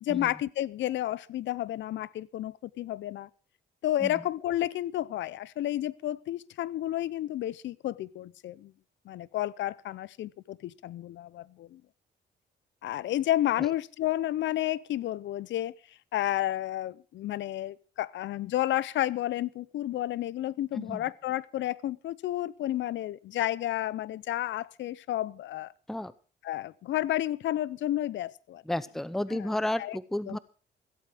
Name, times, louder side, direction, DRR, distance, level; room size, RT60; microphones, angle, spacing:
voice 1, 0.0-3.3 3.8-8.7 9.1-11.8 12.8-15.7 16.1-25.7 26.4-28.6 29.3-29.5 29.8-30.0 30.3-30.4, left 13 dB, 70° left, 0.6 m, -31 dB
voice 2, 20.7-21.0 25.9-26.1 28.7-30.4, left 1 dB, ahead, 0.7 m, -32 dB
15.5 x 8.4 x 6.1 m
cardioid pair, 90°, 20 cm